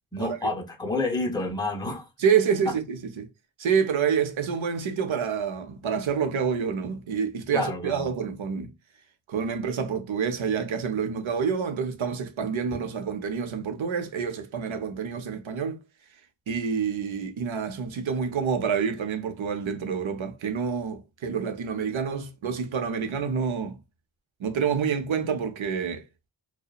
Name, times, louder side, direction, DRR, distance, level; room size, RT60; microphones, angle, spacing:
voice 1, 0.1-2.1 2.7-2.8 7.5-8.1, left 2 dB, 10° left, 0.6 m, -29 dB
voice 2, 2.2-3.3 3.6-8.7 9.3-15.8 16.5-23.8 24.4-26.0, right 6 dB, 80° right, 0.6 m, -27 dB
2.8 x 2.0 x 2.3 m
wide cardioid pair, 100°, 47 cm